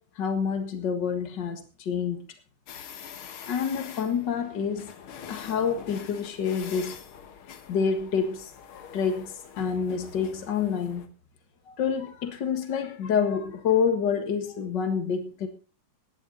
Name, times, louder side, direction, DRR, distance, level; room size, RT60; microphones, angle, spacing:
voice 1, 0.2-2.2 3.5-7.0 7.7-8.5 8.9-11.1 11.7-15.5, left 6 dB, 60° left, 2.2 m, -28 dB
sound 1, 2.7-11.1, left 8 dB, 90° left, 2.2 m, -44 dB
18.0 x 10.5 x 3.9 m
omnidirectional pair, 2.3 m